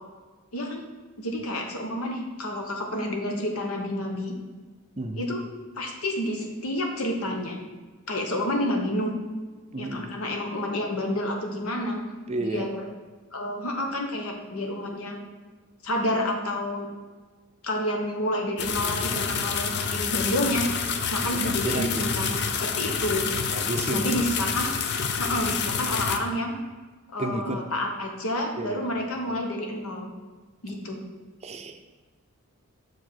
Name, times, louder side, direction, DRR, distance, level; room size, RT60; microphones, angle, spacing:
voice 1, 0.5-0.8 1.2-4.3 5.2-5.4 5.7-7.6 8.1-9.1 9.8-12.0 12.4-12.9 13.3-15.2 15.8-16.9 17.6-20.7 21.1-23.3 23.9-24.7 25.2-26.5 27.1-30.1 30.6-31.0, left 1 dB, 80° left, 2 dB, 1.2 m, -29 dB
voice 2, 5.0-5.4 9.7-10.2 12.3-12.7 21.2-22.4 23.5-24.1 27.2-27.6 28.6-28.8 29.2-29.4 31.4-31.8, right 2 dB, 30° right, 6 dB, 0.6 m, -32 dB
sound 1, 18.6-26.2, left 6 dB, 50° left, 0.5 m, -28 dB
6.5 x 4.8 x 4.5 m, 1.3 s
head